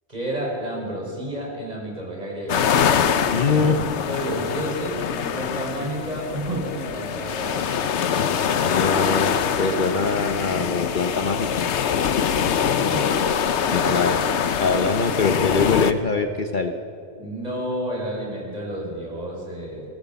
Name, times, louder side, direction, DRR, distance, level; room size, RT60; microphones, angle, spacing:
voice 1, 0.1-2.7 3.4-3.7 4.1-7.7 12.7-13.2 13.6-14.0 17.2-19.8, right 1 dB, 35° right, -2 dB, 5.4 m, -30 dB
sound 1, 2.5-15.9, left 7 dB, 75° left, 1.1 m, -24 dB
voice 2, 3.3-3.8 8.6-9.3 9.6-11.7 13.7-14.2 14.6-16.7, left 4 dB, 45° left, 6 dB, 1.0 m, -23 dB
22.5 x 17.0 x 7.1 m, 2.6 s
omnidirectional pair, 1.2 m